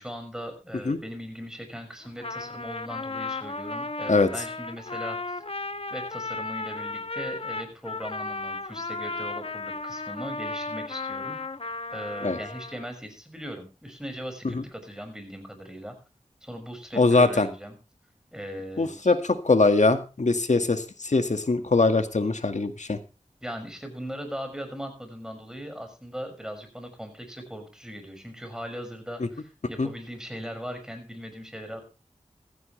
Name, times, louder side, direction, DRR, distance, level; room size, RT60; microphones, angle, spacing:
voice 1, 0.0-5.4 5.9-11.4 11.9-16.0 16.4-17.7 18.3-19.1 23.4-31.8, equal, 5° right, 6 dB, 6.1 m, -39 dB
Trumpet, 2.0-12.9, left 3 dB, 50° left, 1.1 m, -35 dB
voice 2, 17.0-17.5 18.8-23.0 29.8-29.9, left 3 dB, 65° left, 8 dB, 1.9 m, -22 dB
15.5 x 14.5 x 3.3 m, 0.31 s
wide cardioid pair, 45°, 13 cm